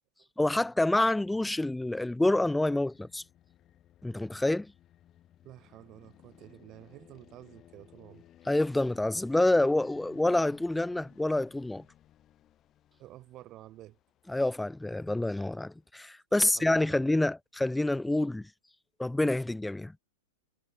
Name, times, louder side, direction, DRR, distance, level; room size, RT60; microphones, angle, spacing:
voice 1, 0.4-3.2 4.0-4.7 8.5-11.8 14.3-18.5 19.0-19.9, left 2 dB, 5° left, 0.3 m, -27 dB
sound 1, 2.4-15.9, left 12 dB, 30° left, 4.4 m, -58 dB
voice 2, 5.4-8.3 12.9-14.0 16.3-17.0, right 15 dB, 35° right, 3.1 m, -51 dB
figure-of-eight pair, 100°, 0 cm